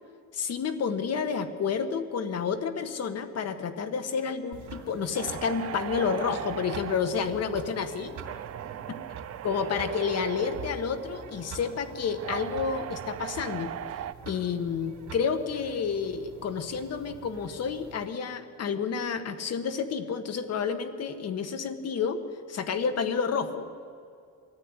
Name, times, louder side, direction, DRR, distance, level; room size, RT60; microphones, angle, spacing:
voice 1, 0.3-8.2 8.9-9.0 9.4-13.7 14.3-22.2 22.5-23.7, left 6 dB, 60° left, 9 dB, 1.7 m, -30 dB
sound 1, 4.5-18.1, right 5 dB, 80° right, 3.0 m, -46 dB
sound 2, 5.1-14.1, right 11 dB, 55° right, 0.7 m, -39 dB
22.5 x 14.5 x 9.9 m, 2.4 s
cardioid pair, 145°, 29 cm